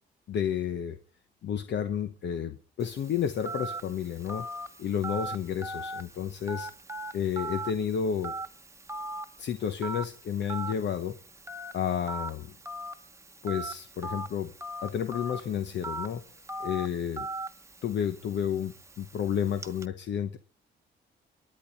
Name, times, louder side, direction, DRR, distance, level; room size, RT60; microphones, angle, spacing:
voice 1, 0.3-1.0 1.4-4.5 4.8-6.7 7.1-8.3 9.4-11.2 11.7-12.5 13.4-14.5 14.8-16.2 16.6-17.3 17.8-20.4, left 8 dB, 65° left, 1.0 m, -31 dB
Telephone, 2.8-19.9, right 2 dB, 15° right, 1.1 m, -40 dB
24.5 x 10.5 x 4.1 m
cardioid pair, 90°, 20 cm